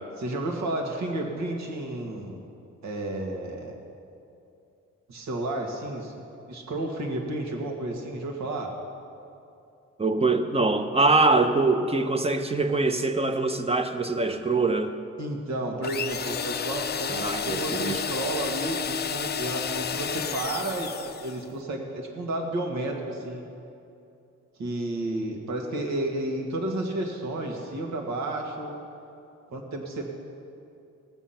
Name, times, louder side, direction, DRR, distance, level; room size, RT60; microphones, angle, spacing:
voice 1, 0.2-2.4 2.8-3.8 5.1-8.7 15.2-23.4 24.6-28.8 29.5-30.2, right 1 dB, 65° right, 2 dB, 2.0 m, -32 dB
voice 2, 10.0-14.9 17.1-18.0, right 3 dB, 20° right, 7 dB, 1.0 m, -23 dB
sound 1, 15.8-21.4, left 7 dB, 35° left, 0.6 m, -31 dB
19.0 x 7.3 x 5.8 m, 2.6 s
cardioid pair, 90°, 30 cm